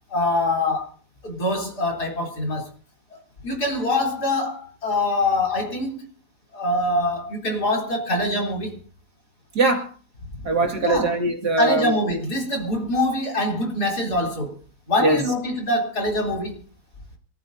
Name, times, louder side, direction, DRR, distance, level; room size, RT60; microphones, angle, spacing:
voice 1, 0.1-0.9 1.2-2.7 3.1-6.1 6.5-8.8 10.8-11.1 11.5-14.6 14.9-16.6, left 1 dB, 50° left, 4.1 m, -24 dB
voice 2, 9.5-9.9 10.4-11.9 15.0-15.2, right 2 dB, 50° right, 2.6 m, -21 dB
26.0 x 14.5 x 2.7 m
omnidirectional pair, 2.3 m